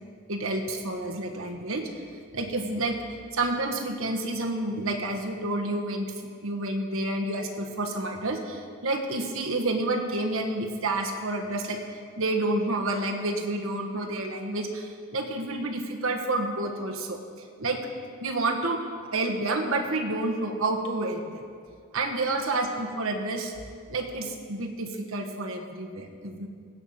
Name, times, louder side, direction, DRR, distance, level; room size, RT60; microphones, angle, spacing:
voice 1, 0.3-1.9 2.3-3.0 3.3-6.1 6.4-11.8 12.2-17.9 18.2-18.8 19.1-21.4 21.9-23.5 23.9-26.5, right 2 dB, 70° right, 3 dB, 1.3 m, -29 dB
17.0 x 5.8 x 7.2 m, 2.2 s
head